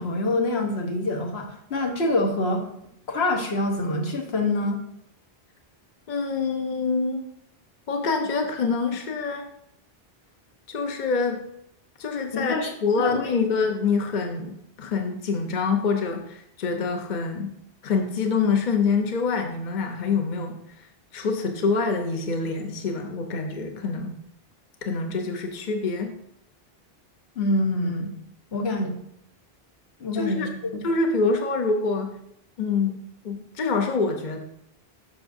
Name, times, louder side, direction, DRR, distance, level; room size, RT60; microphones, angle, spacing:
voice 1, 0.0-2.6 3.1-4.8 12.3-12.7 13.0-13.3 27.4-28.1 28.5-29.0 30.0-30.5 30.8-30.9, left 2 dB, 85° left, 1 dB, 1.4 m, -25 dB
voice 2, 6.1-7.2 7.9-9.5 10.7-11.4 12.0-17.5 17.8-20.6 21.1-24.2 24.8-26.2 30.1-30.5 30.8-32.1 32.6-33.0 33.2-34.4, left 4 dB, 50° left, 4 dB, 0.9 m, -26 dB
11.5 x 5.9 x 2.6 m, 0.75 s
omnidirectional pair, 1.0 m